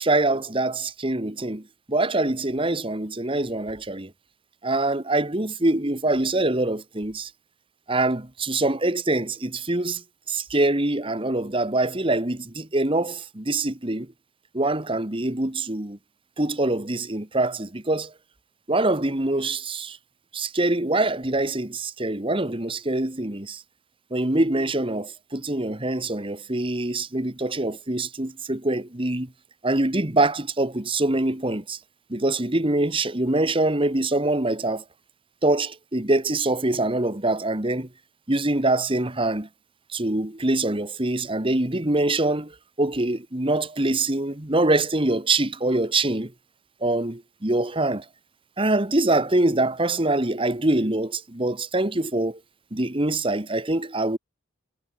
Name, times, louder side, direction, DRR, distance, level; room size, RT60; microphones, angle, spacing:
voice 1, 0.0-4.1 4.6-7.3 7.9-14.1 14.5-16.0 16.4-18.1 18.7-20.0 20.3-23.6 24.1-29.3 29.6-31.8 32.1-34.8 35.4-37.9 38.3-39.5 39.9-46.3 46.8-48.0 48.6-52.4 52.7-54.2, right 2 dB, 25° right, 1.6 m, -24 dB
head